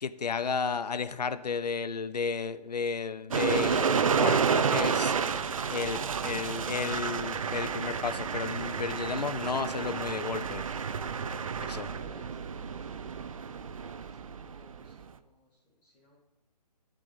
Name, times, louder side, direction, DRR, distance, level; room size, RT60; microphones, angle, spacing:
voice 1, 0.0-5.1 5.7-10.6 11.6-11.9, left 5 dB, 75° left, 14 dB, 0.7 m, -33 dB
sound 1, 3.3-15.0, right 6 dB, 55° right, 0.6 m, -30 dB
voice 2, 11.6-13.1 13.5-13.8 14.1-16.2, left 1 dB, 5° left, -5 dB, 0.5 m, -57 dB
11.0 x 5.0 x 6.6 m, 0.97 s
hypercardioid pair, 160°, 21 cm